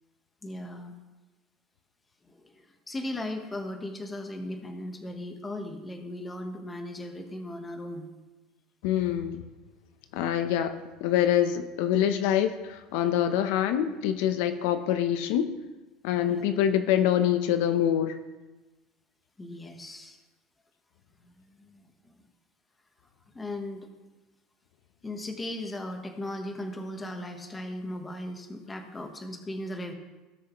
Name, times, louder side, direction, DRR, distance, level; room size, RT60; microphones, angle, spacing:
voice 1, 0.4-0.9 2.3-8.1 16.3-16.5 19.4-20.2 21.2-22.1 23.3-23.9 25.0-29.9, left 1 dB, 15° left, 5 dB, 1.1 m, -37 dB
voice 2, 8.8-9.4 10.1-10.8 11.0-15.5 16.0-18.2, left 10 dB, 75° left, 9 dB, 0.7 m, -25 dB
17.5 x 6.3 x 3.1 m, 1.1 s
supercardioid pair, 140°, 0 cm